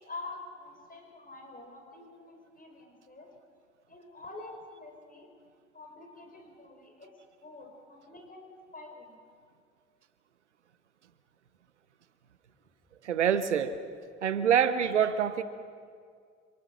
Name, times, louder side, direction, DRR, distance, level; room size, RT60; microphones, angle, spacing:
voice 1, 0.0-3.3 3.9-5.3 5.7-7.1 7.4-9.2 14.8-14.9, left 2 dB, 25° left, 2 dB, 4.9 m, -47 dB
voice 2, 13.0-13.8 14.2-15.4, right 8 dB, 85° right, 14 dB, 0.6 m, -25 dB
27.0 x 20.0 x 6.3 m, 2.2 s
figure-of-eight pair, 45°, 34 cm